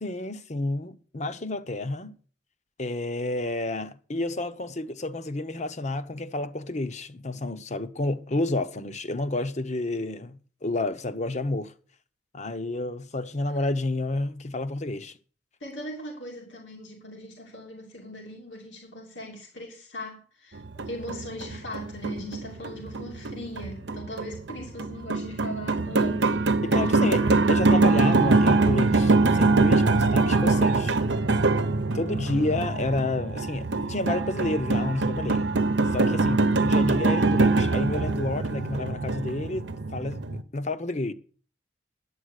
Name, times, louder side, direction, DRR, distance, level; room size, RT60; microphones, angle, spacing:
voice 1, 0.0-2.2 2.8-11.7 12.3-15.2 26.6-30.9 31.9-35.4 35.9-39.7 39.9-41.1, left 2 dB, 40° left, 0.9 m, -30 dB
voice 2, 15.6-26.3 26.7-27.1 32.2-32.6, left 1 dB, 90° left, 2.8 m, -40 dB
sound 1, 20.6-40.4, right 3 dB, 75° right, 0.9 m, -23 dB
11.0 x 8.5 x 6.6 m
head